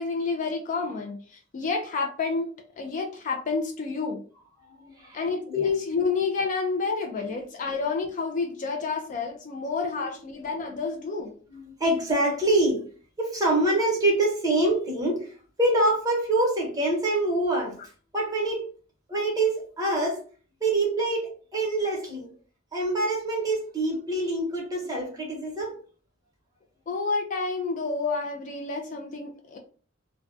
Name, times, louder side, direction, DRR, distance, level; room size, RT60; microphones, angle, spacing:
voice 1, 0.0-4.2 5.1-11.3 26.9-29.6, left 4 dB, 40° left, 4 dB, 0.3 m, -29 dB
voice 2, 4.8-5.6 10.0-10.1 11.5-12.8 13.2-15.3 15.6-17.8 18.1-18.7 19.1-20.2 20.6-22.3 22.7-25.7, right 2 dB, 20° right, -2 dB, 0.8 m, -25 dB
2.3 x 2.2 x 2.5 m, 0.41 s
head